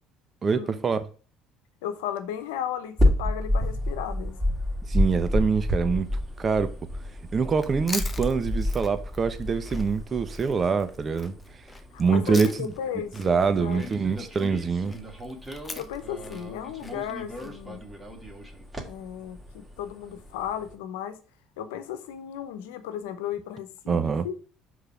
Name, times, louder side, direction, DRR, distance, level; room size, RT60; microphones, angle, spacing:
voice 1, 0.4-1.0 4.9-6.1 6.4-6.7 7.3-11.3 12.0-12.5 13.2-14.9 23.9-24.3, right 5 dB, 35° right, 0.8 m, -24 dB
voice 2, 1.8-4.4 11.9-13.9 15.7-17.9 18.8-21.2 21.6-24.4, left 9 dB, 85° left, 0.9 m, -35 dB
sound 1, 3.0-20.7, left 1 dB, 15° right, 2.0 m, -31 dB
Chewing mastication, 7.5-12.9 13.1-17.5, left 3 dB, 20° left, 0.9 m, -41 dB
5.0 x 4.0 x 5.7 m
hypercardioid pair, 70°, 0 cm